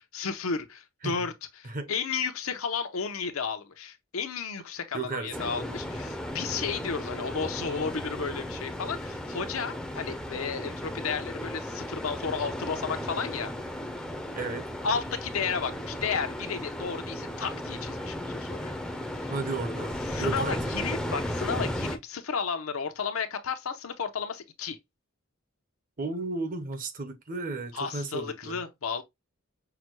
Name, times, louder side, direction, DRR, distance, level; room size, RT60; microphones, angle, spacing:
voice 1, 0.0-13.5 14.8-18.7 19.1-19.3 20.0-24.8 27.7-29.0, left 5 dB, 90° left, 0.7 m, -33 dB
voice 2, 4.9-5.5 14.4-14.7 19.3-20.6 26.0-28.6, right 3 dB, 40° right, 0.7 m, -34 dB
sound 1, 5.3-22.0, left 1 dB, 5° left, 0.5 m, -35 dB
5.8 x 2.2 x 2.9 m
head